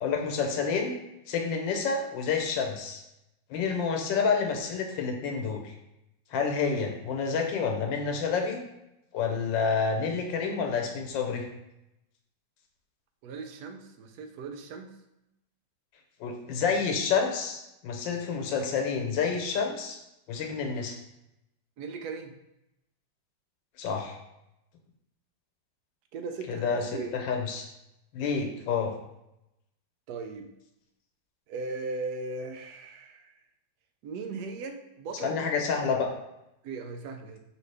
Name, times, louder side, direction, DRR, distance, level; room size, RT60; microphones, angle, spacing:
voice 1, 0.0-0.9 1.3-3.0 3.5-5.7 6.3-8.6 9.1-11.5 16.2-20.0 20.3-21.0 23.8-24.2 26.5-27.7 28.1-28.9 35.2-36.1, left 5 dB, 85° left, 3 dB, 1.5 m, -29 dB
voice 2, 13.2-14.9 21.8-22.4 26.1-26.7 26.9-27.2 30.1-30.5 31.5-33.4 34.0-35.4 36.6-37.4, right 3 dB, 70° right, 6 dB, 1.0 m, -38 dB
4.9 x 3.1 x 3.3 m, 0.88 s
omnidirectional pair, 2.0 m